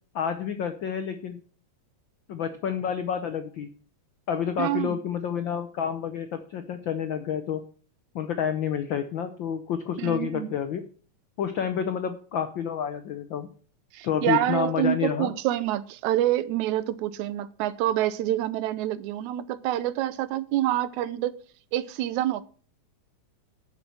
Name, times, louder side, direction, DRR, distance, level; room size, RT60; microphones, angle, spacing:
voice 1, 0.1-1.4 2.3-3.7 4.3-7.6 8.1-10.8 11.4-13.5 14.0-15.3, left 8 dB, 85° left, 1.0 m, -29 dB
voice 2, 4.6-5.0 10.0-10.5 13.9-21.4 21.7-22.4, right 13 dB, 85° right, 2.1 m, -27 dB
11.5 x 6.8 x 6.2 m
omnidirectional pair, 3.3 m